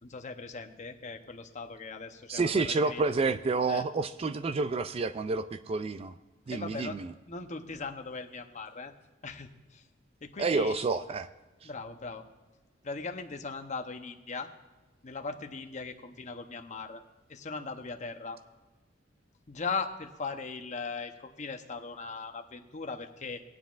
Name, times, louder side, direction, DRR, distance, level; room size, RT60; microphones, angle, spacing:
voice 1, 0.0-3.0 3.7-3.8 6.5-7.0 7.3-8.9 9.2-9.8 10.2-10.8 11.6-12.2 12.8-14.5 15.0-17.0 17.3-18.4 19.5-23.4, left 4 dB, 40° left, 6 dB, 0.8 m, -39 dB
voice 2, 2.3-6.1 6.5-7.1 10.4-11.3, right 3 dB, 30° right, 11 dB, 0.3 m, -29 dB
19.0 x 9.3 x 2.5 m, 1.2 s
head